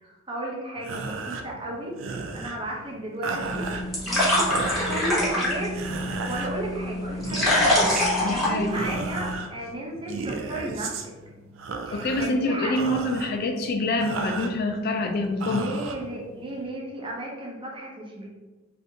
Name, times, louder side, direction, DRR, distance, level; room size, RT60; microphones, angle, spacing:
voice 1, 0.0-3.6 4.1-5.7 6.3-8.0 8.3-10.9 11.9-12.9 15.5-18.3, right 1 dB, 25° right, -2 dB, 0.7 m, -34 dB
sound 1, 0.8-16.7, right 4 dB, 80° right, 0.4 m, -36 dB
sound 2, 3.4-9.3, left 1 dB, ahead, 1.0 m, -25 dB
voice 2, 8.2-8.8 11.9-15.7, left 2 dB, 55° left, 4 dB, 0.4 m, -26 dB
3.4 x 2.6 x 2.7 m, 1.2 s
head